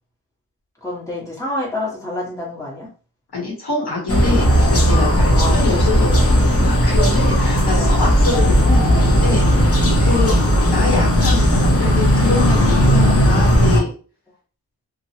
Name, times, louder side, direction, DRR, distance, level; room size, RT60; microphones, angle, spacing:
voice 1, 0.8-2.9 5.3-5.6 7.6-8.0 10.3-10.9, left 1 dB, 10° left, -5 dB, 1.4 m, -28 dB
voice 2, 3.3-13.9, left 3 dB, 65° left, -3 dB, 1.2 m, -25 dB
sound 1, 4.1-13.8, equal, 35° left, 0.8 m, -15 dB
2.9 x 2.3 x 2.8 m, 0.38 s
wide cardioid pair, 85°, 41 cm